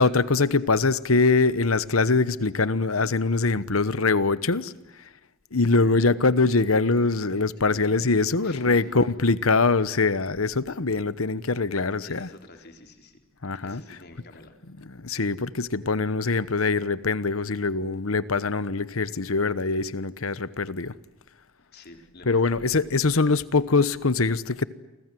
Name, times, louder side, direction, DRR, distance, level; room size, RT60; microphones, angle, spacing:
voice 1, 0.0-4.7 5.5-12.3 13.4-13.8 14.8-20.9 22.3-24.7, left 3 dB, 85° left, 1.1 m, -23 dB
voice 2, 8.4-9.0 12.0-13.2 13.6-14.5 21.6-22.6, left 2 dB, 50° left, 3.8 m, -47 dB
29.0 x 24.5 x 7.8 m
head